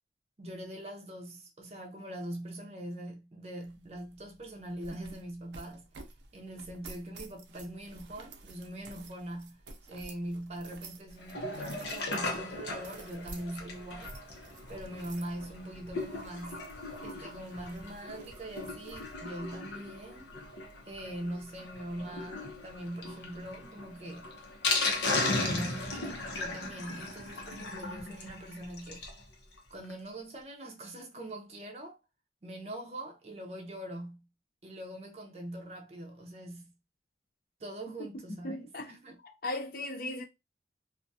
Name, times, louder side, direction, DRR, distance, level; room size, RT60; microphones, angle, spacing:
voice 1, 0.4-5.9 6.3-9.6 9.9-14.2 14.7-16.7 17.0-20.3 20.9-24.4 25.3-29.1 29.7-32.0 32.4-34.3 34.6-36.7 37.6-39.2, right 1 dB, 35° right, 0.5 m, -42 dB
sound 1, 3.6-20.8, right 3 dB, 80° right, 0.5 m, -53 dB
Sink (filling or washing), 11.2-29.2 29.6-29.7 29.8-29.9 30.3-30.4, left 2 dB, 85° left, 0.8 m, -37 dB
voice 2, 38.4-38.9 39.2-40.2, left 2 dB, 55° left, 0.5 m, -37 dB
2.4 x 2.2 x 2.6 m
head